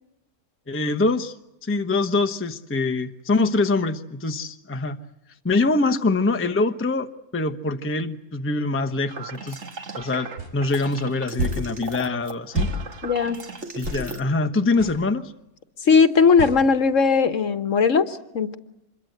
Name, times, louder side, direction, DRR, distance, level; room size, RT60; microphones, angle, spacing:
voice 1, 0.7-1.3 1.6-5.0 5.4-9.6 10.0-12.7 13.8-15.3, left 3 dB, 10° left, 7 dB, 0.8 m, -24 dB
sound 1, 9.1-14.2, right 3 dB, 50° right, 2.1 m, -37 dB
sound 2, 10.4-10.5 11.4-11.6 12.6-12.8 13.8-14.0 14.8-15.0 16.4-16.6, right 1 dB, 90° right, 5.5 m, -27 dB
voice 2, 13.0-13.4 15.8-18.6, left 5 dB, 55° left, 10 dB, 1.4 m, -18 dB
25.5 x 22.0 x 7.9 m, 0.90 s
omnidirectional pair, 1.6 m